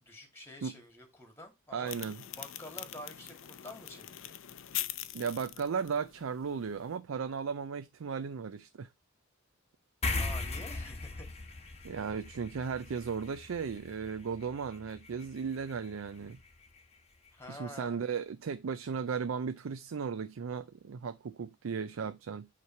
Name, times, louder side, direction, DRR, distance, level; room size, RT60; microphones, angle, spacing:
voice 1, 0.0-1.9 2.3-4.3 10.2-11.3 11.6-11.8 17.3-18.1, left 1 dB, 15° left, 2.0 m, -48 dB
voice 2, 1.7-2.2 5.1-8.9 11.8-16.4 17.5-22.5, right 6 dB, 85° right, 0.5 m, -36 dB
sound 1, 1.9-7.0, left 13 dB, 70° left, 0.5 m, -43 dB
sound 2, 10.0-16.8, left 3 dB, 30° left, 1.0 m, -40 dB
8.4 x 3.3 x 4.4 m
head